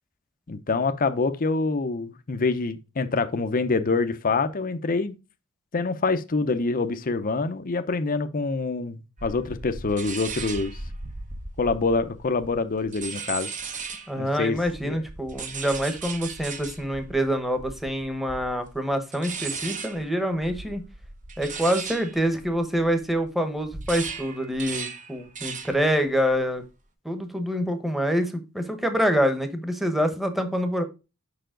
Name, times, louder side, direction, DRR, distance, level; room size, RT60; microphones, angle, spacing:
voice 1, 0.5-5.1 5.7-10.8 11.6-13.5 14.2-15.0, left 3 dB, 40° left, 0.7 m, -26 dB
sound 1, 9.2-14.2 14.5-23.2 23.6-25.9 26.2-26.6, right 5 dB, 35° right, 0.9 m, -37 dB
voice 2, 14.1-20.8 21.4-26.6 27.0-30.8, equal, ahead, 1.1 m, -26 dB
6.9 x 5.5 x 3.8 m
head